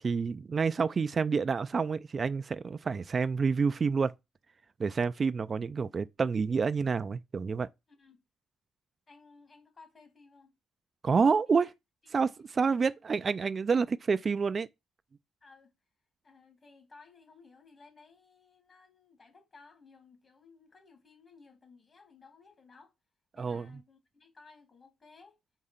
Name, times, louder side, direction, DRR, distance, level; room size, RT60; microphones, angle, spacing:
voice 1, 0.0-4.1 4.8-7.7 11.0-11.7 12.1-14.7 23.4-23.7, right 5 dB, 40° right, 0.3 m, -28 dB
voice 2, 7.9-8.2 9.1-10.6 11.6-11.7 12.0-12.5 15.4-15.7 16.2-22.9 23.3-25.4, left 4 dB, 35° left, 2.3 m, -58 dB
5.3 x 4.9 x 5.6 m
cardioid pair, 90°, 0 cm